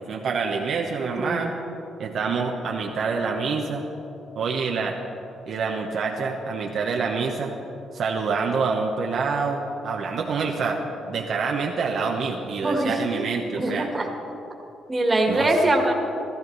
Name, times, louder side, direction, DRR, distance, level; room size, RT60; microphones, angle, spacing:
voice 1, 0.0-1.5 2.0-3.8 4.4-5.0 5.5-7.5 7.9-10.8 11.1-13.9 15.3-15.5, right 5 dB, 60° right, 0 dB, 1.0 m, -26 dB
voice 2, 1.1-1.5 12.6-13.0 13.6-14.1 14.9-15.9, right 1 dB, 25° right, 1 dB, 1.9 m, -22 dB
15.5 x 13.5 x 4.0 m, 2.9 s
cardioid pair, 90°, 0 cm